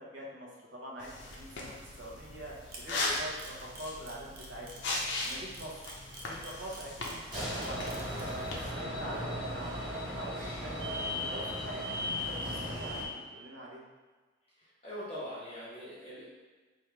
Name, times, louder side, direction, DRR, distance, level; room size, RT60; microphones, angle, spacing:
voice 1, 0.0-3.3 3.6-4.9 5.2-5.7 6.3-9.7 10.0-10.7 11.1-13.9, equal, 80° right, -4 dB, 0.9 m, -45 dB
sound 1, 1.0-8.7, left 2 dB, 75° left, 0.7 m, -39 dB
Camera, 2.7-8.2, right 3 dB, 50° right, 0.6 m, -47 dB
voice 2, 2.9-3.3 14.6-16.2, equal, 30° left, -9 dB, 1.4 m, -42 dB
sound 2, 7.3-13.0, left 1 dB, 25° right, 1.3 m, -36 dB
3.4 x 2.7 x 4.5 m, 1.3 s
head